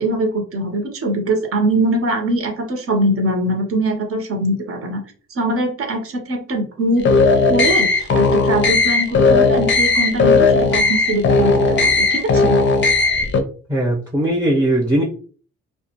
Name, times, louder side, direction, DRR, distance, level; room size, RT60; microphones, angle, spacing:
voice 1, 0.0-5.0 5.3-7.1 7.5-12.6, right 1 dB, 50° right, 3 dB, 0.9 m, -22 dB
sound 1, 7.0-13.4, left 3 dB, 40° left, 0.5 m, -16 dB
voice 2, 13.7-15.0, right 1 dB, 10° right, -4 dB, 0.8 m, -18 dB
2.3 x 2.2 x 2.8 m, 0.41 s
cardioid pair, 90°, 30 cm